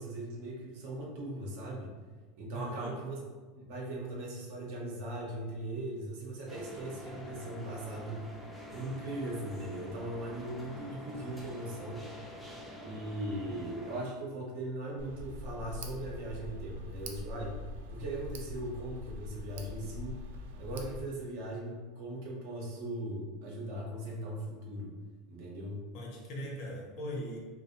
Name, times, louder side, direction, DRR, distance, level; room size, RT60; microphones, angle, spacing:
voice 1, 0.0-1.9 2.3-3.2 3.5-8.3 8.7-12.1 12.8-17.6 17.9-20.2 20.6-24.9 25.3-25.8, right 1 dB, 70° right, -2 dB, 0.7 m, -39 dB
voice 2, 2.5-3.0 13.4-13.6 25.9-27.4, equal, 60° left, -2 dB, 0.7 m, -40 dB
sound 1, 6.5-14.0, left 1 dB, ahead, 0.4 m, -47 dB
Tick, 15.0-21.0, left 2 dB, 90° right, 0.3 m, -43 dB
2.4 x 2.0 x 2.7 m, 1.4 s
supercardioid pair, 135°, 0 cm